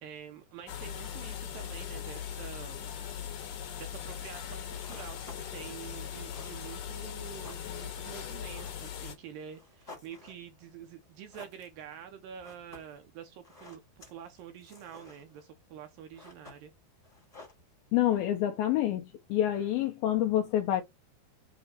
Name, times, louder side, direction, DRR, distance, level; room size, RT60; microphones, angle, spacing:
voice 1, 0.0-3.0 3.6-16.7, right 8 dB, 75° right, 2.3 m, -47 dB
sound 1, 0.7-9.2, left 9 dB, 65° left, 2.8 m, -40 dB
sound 2, 4.5-18.1, left 2 dB, 15° left, 1.5 m, -55 dB
voice 2, 17.9-20.8, left 12 dB, 80° left, 2.4 m, -27 dB
7.8 x 2.9 x 4.3 m
omnidirectional pair, 4.6 m